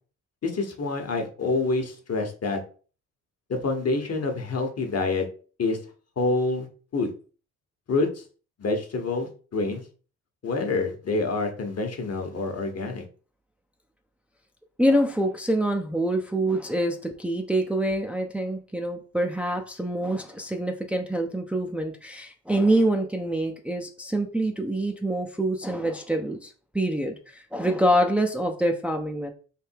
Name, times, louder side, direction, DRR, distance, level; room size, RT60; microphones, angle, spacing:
voice 1, 0.4-2.6 3.5-5.3 5.6-5.8 6.2-6.7 6.9-7.1 7.9-8.2 8.6-9.8 10.4-13.0, left 3 dB, 45° left, 4 dB, 1.3 m, -27 dB
voice 2, 14.8-29.3, right 1 dB, 5° right, 2 dB, 0.7 m, -26 dB
3.6 x 2.7 x 4.6 m, 0.39 s
hypercardioid pair, 50°, 35 cm